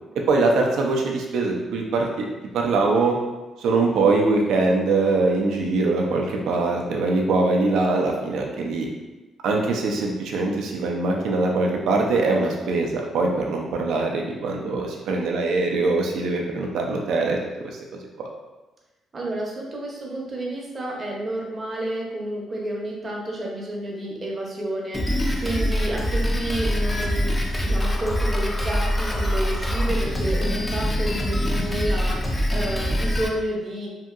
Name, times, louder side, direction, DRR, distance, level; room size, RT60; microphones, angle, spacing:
voice 1, 0.3-2.3 2.5-3.2 3.6-8.9 9.4-17.4 17.6-18.3, right 3 dB, 80° right, 1 dB, 0.4 m, -22 dB
voice 2, 19.1-33.9, right 1 dB, 35° right, -2 dB, 0.7 m, -30 dB
Drum kit, 24.9-33.3, equal, 15° left, 0.4 m, -24 dB
2.8 x 2.6 x 2.4 m, 1.1 s
cardioid pair, 90°, 0 cm